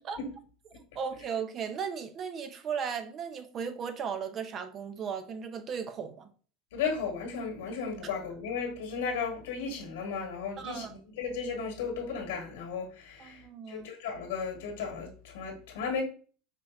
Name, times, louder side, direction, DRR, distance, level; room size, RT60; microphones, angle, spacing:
voice 1, 0.9-6.3 10.6-10.9 13.2-13.9, right 6 dB, 40° right, 0.7 m, -36 dB
voice 2, 6.7-10.9 11.2-16.0, left 5 dB, 85° left, 1.7 m, -35 dB
5.2 x 3.4 x 2.7 m
supercardioid pair, 100°, 0 cm